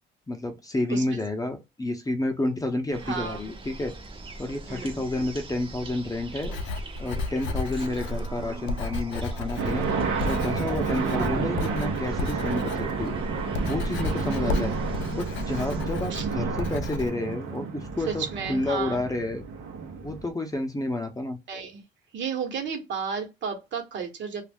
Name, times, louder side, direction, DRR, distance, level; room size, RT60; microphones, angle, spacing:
voice 1, 0.3-4.0 4.4-6.5 7.0-9.9 10.2-13.1 13.7-14.8 15.1-19.4 20.0-21.4, left 1 dB, 15° left, 0.7 m, -30 dB
sound 1, 2.9-15.8, right 3 dB, 25° right, 0.6 m, -40 dB
voice 2, 3.0-3.4 4.6-5.0 14.2-14.6 16.1-16.2 18.1-19.0 21.5-21.8 22.1-24.4, right 6 dB, 65° right, 1.1 m, -33 dB
Writing, 6.3-17.1, left 3 dB, 70° left, 0.4 m, -33 dB
sound 2, 9.6-20.3, right 5 dB, 90° right, 0.7 m, -30 dB
2.4 x 2.1 x 3.4 m
cardioid pair, 90°, 20 cm